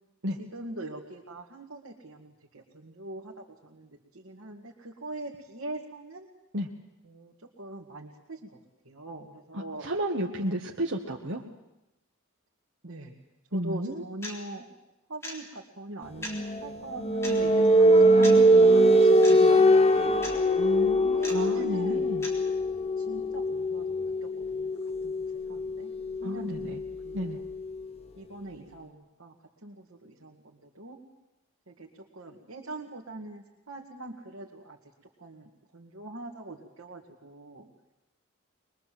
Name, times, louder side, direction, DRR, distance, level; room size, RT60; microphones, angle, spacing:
voice 1, 0.5-6.3 7.0-8.6 8.8-9.8 10.4-10.6 12.8-13.1 13.5-14.7 15.1-16.3 16.6-20.2 21.2-22.1 23.0-24.7 25.0-25.2 25.5-25.9 26.2-27.4 28.2-29.3 29.6-31.0 31.7-34.8 35.2-37.7, right 2 dB, 85° right, -2 dB, 2.3 m, -42 dB
voice 2, 9.5-11.4 13.5-14.0 20.6-22.3 26.2-26.8 27.1-27.4, equal, 60° right, 0 dB, 1.6 m, -32 dB
sound 1, 14.2-14.4 15.2-15.4 16.2-16.4 17.2-17.4 18.2-18.4 19.2-19.4 20.2-20.4 21.2-21.4 22.2-22.3, left 1 dB, 15° left, 3.8 m, -37 dB
sound 2, 16.2-27.7, right 1 dB, 30° left, 1.1 m, -23 dB
23.0 x 22.5 x 7.8 m, 0.95 s
head